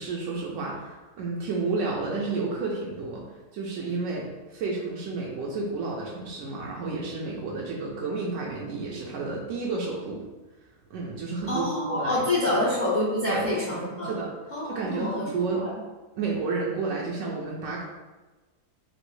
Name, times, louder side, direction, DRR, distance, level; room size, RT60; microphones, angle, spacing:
voice 1, 0.0-3.2 3.5-10.2 10.9-12.6 13.3-13.5 14.0-14.3 14.7-15.6 16.2-17.8, right 3 dB, 75° right, -3 dB, 0.7 m, -31 dB
voice 2, 11.5-14.2 14.5-15.2 15.5-15.7, left 1 dB, 45° left, -8 dB, 0.6 m, -27 dB
3.1 x 2.6 x 3.0 m, 1.2 s
omnidirectional pair, 1.8 m